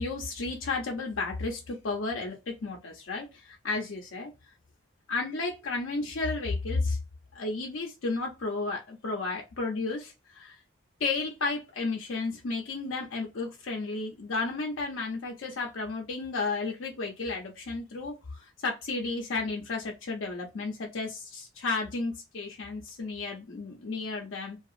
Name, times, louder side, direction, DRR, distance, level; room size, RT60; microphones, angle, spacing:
voice 1, 0.0-4.3 5.1-7.0 7.3-10.6 11.0-24.6, left 3 dB, 85° left, 0 dB, 0.6 m, -33 dB
2.7 x 2.3 x 2.4 m, 0.25 s
head